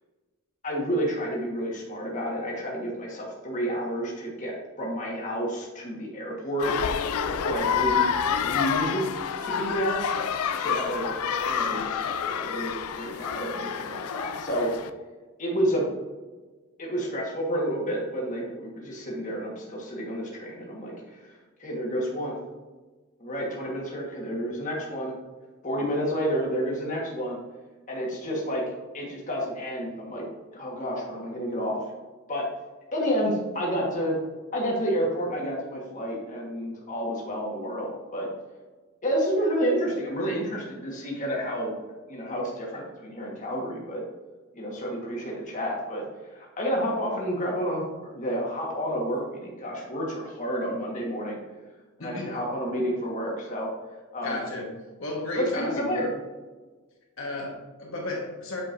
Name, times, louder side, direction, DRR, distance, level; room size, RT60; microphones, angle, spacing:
voice 1, 0.6-6.7 7.3-8.0 8.4-9.0 9.4-10.0 10.6-11.1 11.4-12.7 13.0-14.7 15.4-15.9 16.8-21.3 21.6-22.4 23.2-25.1 25.6-27.4 27.9-28.6 28.9-30.2 30.5-31.8 32.3-32.4 32.9-34.2 34.5-38.3 39.0-41.7 42.1-44.0 44.5-46.0 46.3-51.4 52.0-53.7 54.1-54.4 55.3-56.1, equal, 35° left, -3 dB, 1.4 m, -30 dB
sound 1, 6.6-14.9, left 7 dB, 75° left, 0.4 m, -28 dB
voice 2, 52.0-52.3 54.2-54.7 55.0-56.0 57.2-58.6, left 2 dB, 60° left, -2 dB, 1.3 m, -33 dB
8.0 x 5.2 x 2.6 m, 1.3 s
head